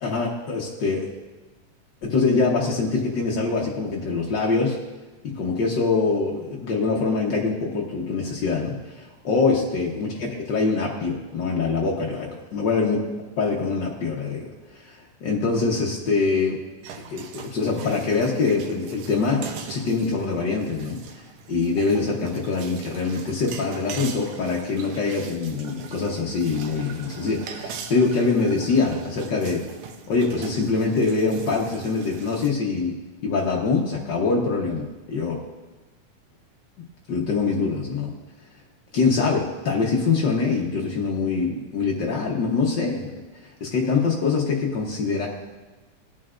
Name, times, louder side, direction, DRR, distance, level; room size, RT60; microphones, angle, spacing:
voice 1, 0.0-1.1 2.0-4.8 5.2-13.0 13.4-14.5 14.8-16.6 17.1-21.0 21.5-29.6 30.1-33.0 33.2-35.4 36.8-38.1 38.9-43.1 43.6-45.3, left 4 dB, 80° left, -2 dB, 1.0 m, -24 dB
sound 1, 16.8-32.5, right 6 dB, 85° right, 2.3 m, -41 dB
17.5 x 9.2 x 2.5 m, 1.2 s
omnidirectional pair, 3.6 m